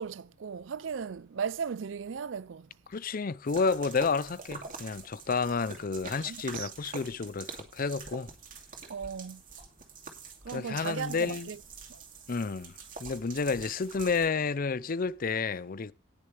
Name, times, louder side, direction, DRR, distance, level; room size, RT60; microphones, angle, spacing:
voice 1, 0.0-2.7 6.3-6.7 8.9-9.4 10.4-11.6 11.9-12.0, right 6 dB, 70° right, 0.5 m, -36 dB
voice 2, 2.9-8.3 10.5-11.5 12.3-12.7 13.0-15.9, left 4 dB, 45° left, 0.6 m, -30 dB
sound 1, 3.5-14.3, right 4 dB, 45° right, 2.6 m, -46 dB
18.5 x 6.6 x 3.3 m
head